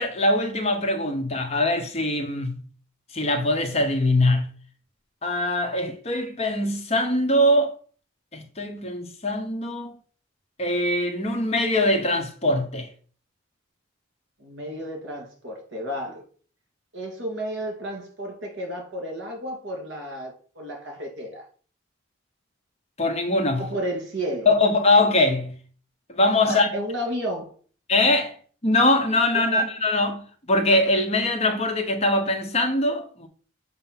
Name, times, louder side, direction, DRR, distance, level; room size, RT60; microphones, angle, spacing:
voice 1, 0.0-2.6 3.1-4.5 5.2-7.7 8.3-10.0 10.6-12.9 23.0-23.6 24.5-25.5 26.1-26.7 27.9-28.3 28.6-33.3, left 1 dB, 30° left, 0.8 m, -22 dB
voice 2, 14.4-16.2 16.9-21.5 23.6-24.5 26.5-27.5 29.3-29.7, equal, 60° right, 2.4 m, -32 dB
6.7 x 2.8 x 5.7 m
head